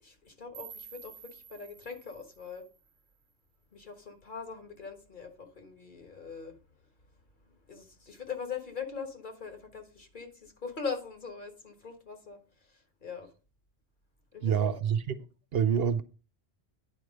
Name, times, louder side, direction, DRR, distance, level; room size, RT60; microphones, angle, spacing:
voice 1, 0.0-2.7 3.7-6.6 7.7-13.3 14.3-14.7, left 5 dB, 50° left, 1.7 m, -41 dB
sound 1, 0.5-3.6, right 8 dB, 90° right, 1.3 m, -51 dB
voice 2, 14.4-15.2 15.5-16.0, right 7 dB, 65° right, 0.9 m, -26 dB
10.0 x 4.6 x 6.3 m
omnidirectional pair, 1.1 m